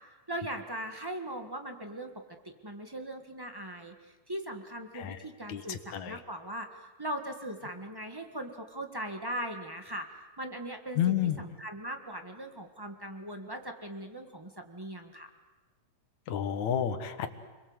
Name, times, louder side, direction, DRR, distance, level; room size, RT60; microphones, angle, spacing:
voice 1, 0.3-2.1 2.4-3.9 4.3-10.1 10.4-15.3, right 1 dB, 30° right, 5 dB, 0.4 m, -39 dB
voice 2, 5.5-6.2 11.0-11.4 16.3-17.3, left 10 dB, 70° left, 9 dB, 2.8 m, -30 dB
30.0 x 22.5 x 8.0 m, 1.2 s
omnidirectional pair, 3.6 m